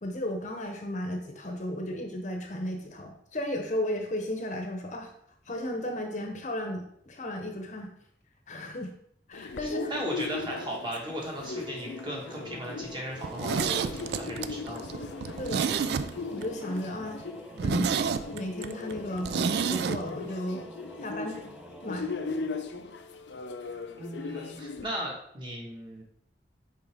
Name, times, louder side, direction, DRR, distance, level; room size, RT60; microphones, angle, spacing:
voice 1, 0.0-5.1 5.5-7.9 8.5-8.9 9.3-9.9 15.4-15.7 16.3-17.2 17.6-18.0 18.3-20.6 21.0-21.4 21.8-22.1, left 1 dB, 40° left, 3 dB, 0.8 m, -34 dB
sound 1, 9.3-24.8, left 4 dB, 80° left, 0.5 m, -38 dB
voice 2, 9.6-14.9 24.0-26.0, right 1 dB, 25° right, -1 dB, 1.4 m, -37 dB
Singing / Musical instrument, 11.1-23.6, equal, 5° right, 0.5 m, -49 dB
Zipper (clothing), 13.2-16.5 16.8-16.9 17.2-17.3 17.6-20.0 20.3-20.4, right 6 dB, 65° right, 0.3 m, -29 dB
6.0 x 4.9 x 3.5 m, 0.69 s
head